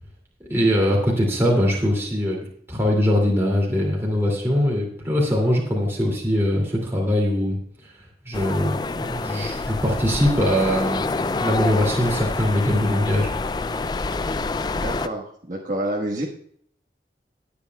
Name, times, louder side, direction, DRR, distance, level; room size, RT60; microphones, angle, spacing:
voice 1, 0.4-7.6 7.8-7.9 8.2-13.3, equal, 15° right, -3 dB, 2.5 m, -22 dB
sound 1, 8.3-15.1, left 3 dB, 25° left, 0.3 m, -27 dB
voice 2, 14.7-16.3, right 1 dB, 45° right, -4 dB, 1.5 m, -28 dB
20.5 x 8.5 x 2.3 m, 0.63 s
head